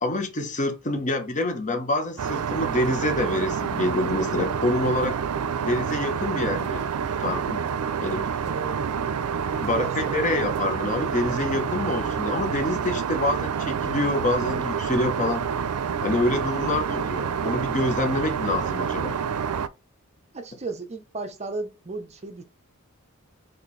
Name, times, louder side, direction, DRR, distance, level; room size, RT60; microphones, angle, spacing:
voice 1, 0.0-5.2 5.6-6.8 7.2-7.6 8.0-8.3 9.6-15.4 16.0-19.2, left 1 dB, 35° left, 0.8 m, -26 dB
Aircraft, 2.2-19.7, right 7 dB, 90° right, 0.4 m, -28 dB
voice 2, 8.5-9.2 9.6-10.2 20.3-22.4, right 3 dB, 30° right, 0.6 m, -35 dB
4.3 x 3.2 x 3.1 m
head